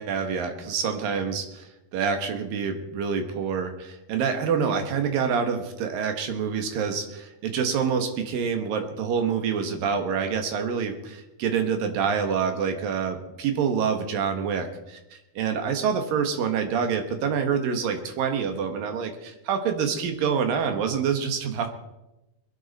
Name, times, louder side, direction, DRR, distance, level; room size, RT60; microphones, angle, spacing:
voice 1, 0.0-15.0 15.4-21.7, right 6 dB, 70° right, 6 dB, 3.1 m, -27 dB
22.0 x 10.5 x 4.2 m, 0.94 s
omnidirectional pair, 4.5 m